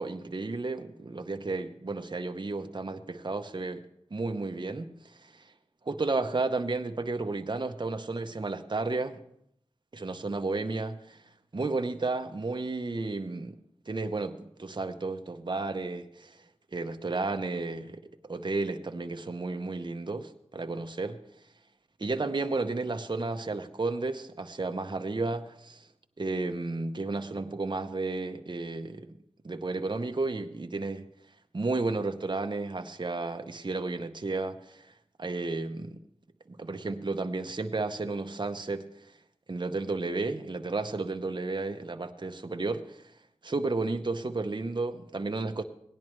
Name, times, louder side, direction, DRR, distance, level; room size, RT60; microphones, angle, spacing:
voice 1, 0.0-5.5 5.8-9.2 9.9-11.2 11.5-13.6 13.9-16.4 16.7-21.2 22.0-25.9 26.2-29.1 29.4-31.0 31.5-34.9 35.2-36.0 36.5-38.9 39.5-43.1 43.4-45.6, right 3 dB, 40° right, 6 dB, 0.7 m, -32 dB
17.5 x 10.5 x 3.2 m, 0.73 s
wide cardioid pair, 45°, 12 cm